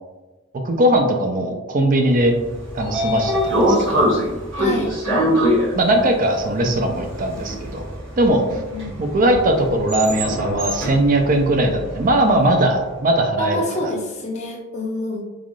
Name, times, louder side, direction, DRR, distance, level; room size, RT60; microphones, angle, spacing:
voice 1, 0.6-2.4 2.7-4.1 5.8-7.8 8.2-8.6 9.0-13.9, right 1 dB, 40° right, 4 dB, 0.4 m, -19 dB
Train / Sliding door, 2.3-12.5, equal, 65° right, 1.1 m, -23 dB
voice 2, 4.6-4.9 8.5-8.9 13.4-15.2, left 1 dB, 35° left, -1 dB, 0.5 m, -27 dB
3.3 x 2.4 x 2.2 m, 1.2 s
head